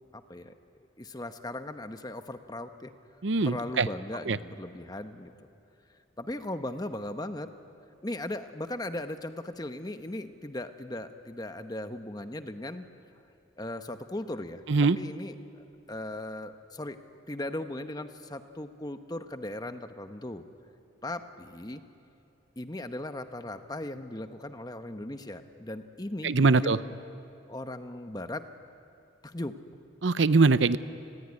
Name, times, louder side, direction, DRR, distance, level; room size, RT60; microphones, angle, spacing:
voice 1, 0.1-0.5 1.0-2.9 3.4-5.3 6.2-7.5 8.0-12.9 13.6-14.6 15.0-17.0 17.3-20.4 21.0-21.8 22.6-26.9 27.5-28.4 29.2-29.5, left 1 dB, 20° left, 8 dB, 1.0 m, -38 dB
voice 2, 3.2-3.9 4.3-4.4 14.7-15.0 26.2-26.8 30.0-30.8, right 3 dB, 65° right, 14 dB, 0.7 m, -22 dB
29.5 x 20.5 x 9.8 m, 2.6 s
head